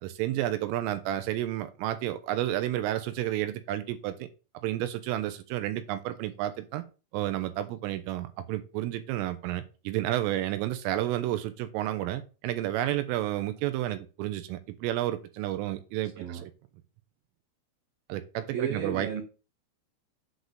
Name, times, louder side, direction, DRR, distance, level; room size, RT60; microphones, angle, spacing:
voice 1, 0.0-4.3 4.6-6.8 7.1-16.5 18.1-19.2, right 13 dB, 85° right, 3.3 m, -31 dB
voice 2, 18.5-19.2, right 7 dB, 65° right, 2.5 m, -33 dB
8.0 x 4.0 x 6.6 m
omnidirectional pair, 5.9 m